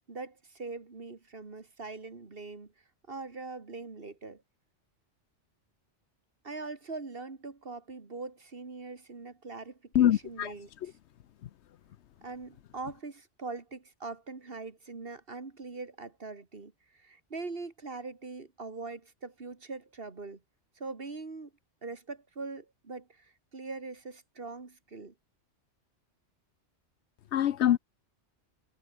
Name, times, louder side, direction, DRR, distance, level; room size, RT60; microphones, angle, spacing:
voice 1, 0.1-2.7 3.1-4.4 6.4-11.0 12.2-20.4 20.8-21.5 21.8-25.1, right 3 dB, 50° right, 2.3 m, -42 dB
voice 2, 9.9-10.5 10.8-10.9 11.4-11.5 27.3-27.8, left 11 dB, 70° left, 0.9 m, -24 dB
omnidirectional pair, 1.2 m